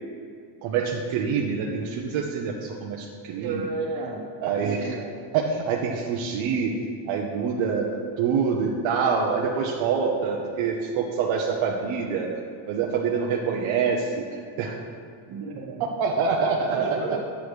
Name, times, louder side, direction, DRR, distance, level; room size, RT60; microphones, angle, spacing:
voice 1, 0.6-3.7 4.4-5.0 5.3-6.8 7.1-12.3 12.7-14.7 15.8-17.2, right 5 dB, 80° right, -1 dB, 1.0 m, -26 dB
voice 2, 3.3-4.3 4.6-5.1 15.3-15.8 16.7-17.2, right 4 dB, 50° right, -3 dB, 1.8 m, -32 dB
10.5 x 8.6 x 3.2 m, 2.3 s
cardioid pair, 170°, 47 cm